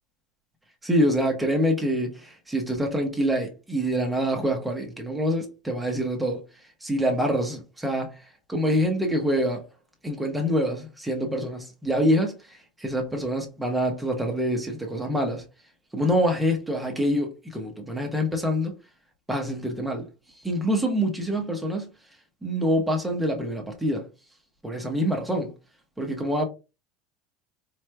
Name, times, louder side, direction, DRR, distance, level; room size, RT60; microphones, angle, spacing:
voice 1, 0.8-6.4 6.8-8.2 8.5-9.6 10.0-15.4 15.9-18.7 19.3-20.0 20.4-21.9 22.4-24.1 24.6-25.5 26.0-26.4, equal, 5° right, 0.9 m, -26 dB
4.2 x 3.1 x 2.2 m
supercardioid pair, 145°, 0 cm